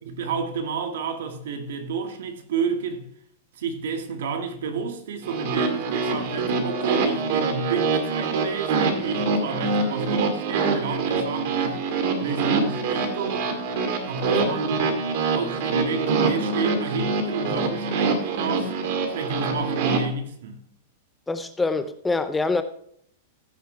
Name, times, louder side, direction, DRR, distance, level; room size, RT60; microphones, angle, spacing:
voice 1, 0.0-3.1 3.6-11.8 12.2-13.5 14.0-18.7 19.1-20.6, right 4 dB, 75° right, 2.1 m, -30 dB
sound 1, 5.2-20.0, right 4 dB, 50° right, 2.2 m, -25 dB
voice 2, 21.3-22.6, left 3 dB, 5° left, 0.6 m, -25 dB
15.5 x 6.6 x 3.4 m
supercardioid pair, 160°, 0 cm